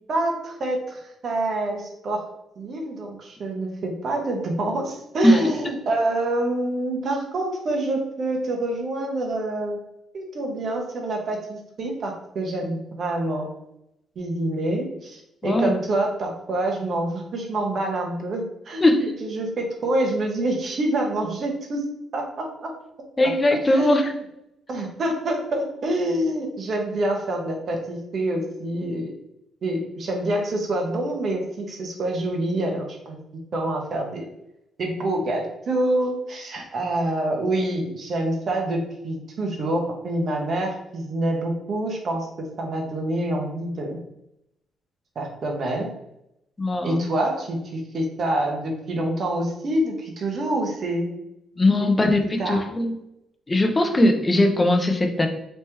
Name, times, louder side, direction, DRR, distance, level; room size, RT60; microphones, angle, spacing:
voice 1, 0.1-2.2 2.6-9.8 10.1-13.5 14.2-21.8 22.1-22.7 23.7-23.9 24.7-29.1 29.6-33.2 33.5-34.3 34.8-44.0 45.1-45.9 46.8-51.1 51.8-52.1 52.4-52.6, right 1 dB, 55° right, 1 dB, 1.0 m, -26 dB
voice 2, 18.8-19.2 23.2-24.1 46.6-47.1 51.6-52.9 53.5-55.3, left 1 dB, 20° left, 5 dB, 0.6 m, -20 dB
3.3 x 2.8 x 3.4 m, 0.81 s
cardioid pair, 90°, 0 cm